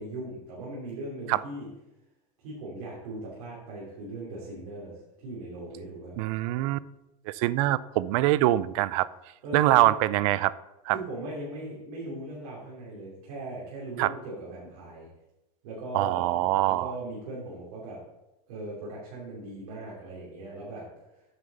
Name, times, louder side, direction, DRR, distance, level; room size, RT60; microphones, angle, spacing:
voice 1, 0.0-1.7 2.4-6.2 9.4-9.9 10.9-15.1 15.6-18.0 18.5-20.9, right 2 dB, 80° right, -6 dB, 3.1 m, -39 dB
voice 2, 6.2-6.8 7.3-9.1 9.5-10.5 10.9-11.0 14.0-14.1 15.9-16.9, right 16 dB, 65° right, 18 dB, 0.5 m, -24 dB
9.4 x 6.5 x 4.1 m, 0.95 s
supercardioid pair, 115°, 19 cm